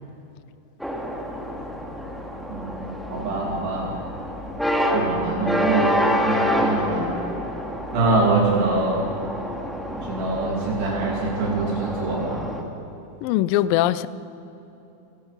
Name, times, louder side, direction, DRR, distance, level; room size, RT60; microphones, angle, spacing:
sound 1, 0.8-12.6, equal, ahead, 1.2 m, -27 dB
voice 1, 2.5-3.9 4.9-7.1 7.9-9.0 10.0-12.4, right 3 dB, 80° right, -2 dB, 4.6 m, -24 dB
voice 2, 13.2-14.1, left 13 dB, 80° left, 16 dB, 2.1 m, -21 dB
28.5 x 21.0 x 5.6 m, 2.9 s
omnidirectional pair, 4.7 m